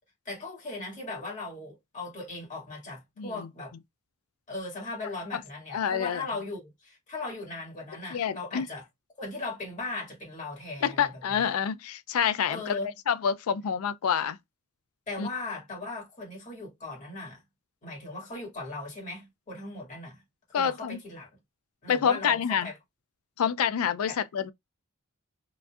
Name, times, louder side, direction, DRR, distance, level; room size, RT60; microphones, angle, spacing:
voice 1, 0.3-3.7 4.5-8.9 9.2-11.5 12.5-12.9 15.1-17.4 17.8-20.2 20.5-21.3 21.8-22.7 24.1-24.2, left 2 dB, 35° left, 1.9 m, -38 dB
voice 2, 3.2-3.5 5.7-6.2 8.1-8.7 10.8-12.8 13.1-14.4 15.2-15.3 20.5-21.0 21.9-22.7 23.4-24.5, left 7 dB, 85° left, 0.4 m, -27 dB
3.8 x 2.6 x 2.3 m
head